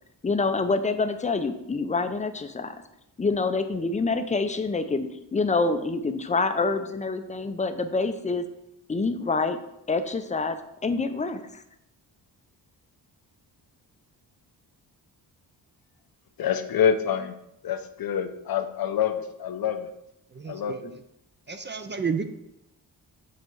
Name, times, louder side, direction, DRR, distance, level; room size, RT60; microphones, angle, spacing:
voice 1, 0.2-2.7 3.2-8.5 8.9-9.6 9.9-10.6 10.8-11.6, left 3 dB, 20° left, 9 dB, 0.5 m, -26 dB
voice 2, 16.4-17.4 17.6-19.9 20.5-20.9, left 8 dB, 60° left, 9 dB, 0.7 m, -26 dB
voice 3, 20.4-20.8 21.5-22.2, right 5 dB, 25° right, 7 dB, 0.5 m, -30 dB
7.6 x 4.0 x 4.6 m, 0.84 s
cardioid pair, 95°, 41 cm